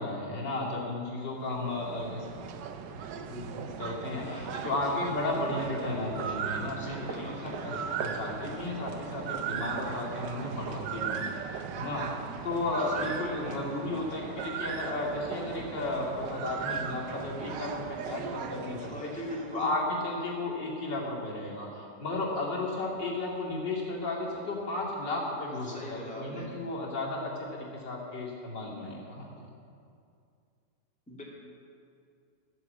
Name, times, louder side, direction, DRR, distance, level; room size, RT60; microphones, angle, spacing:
voice 1, 0.0-2.3 2.7-2.8 3.3-19.1 19.5-29.4, left 2 dB, 75° left, -4 dB, 3.1 m, -34 dB
sound 1, 1.3-19.7, right 7 dB, 75° right, 1.4 m, -38 dB
voice 2, 4.2-5.0 6.8-7.8 12.9-13.7 18.8-19.7 25.6-26.4 31.1-31.2, left 1 dB, 5° left, -5 dB, 2.4 m, -42 dB
13.5 x 7.8 x 8.2 m, 2.4 s
omnidirectional pair, 1.9 m